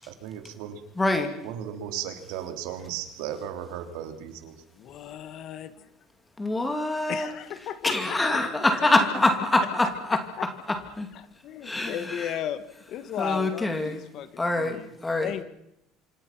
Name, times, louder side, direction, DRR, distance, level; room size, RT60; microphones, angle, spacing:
voice 1, 0.1-0.9 1.4-4.6, right 9 dB, 80° right, 3.2 m, -36 dB
voice 2, 1.0-1.3 6.4-7.3 7.8-10.2 10.7-11.1 11.6-12.3 13.2-14.0 14.4-15.3, left 2 dB, 10° left, 2.5 m, -25 dB
voice 3, 4.8-5.9 7.1-8.4 9.0-9.1 9.6-10.5 11.1-14.9 15.2-15.4, left 10 dB, 40° left, 1.3 m, -35 dB
26.5 x 24.5 x 6.0 m
cardioid pair, 175°, 0 cm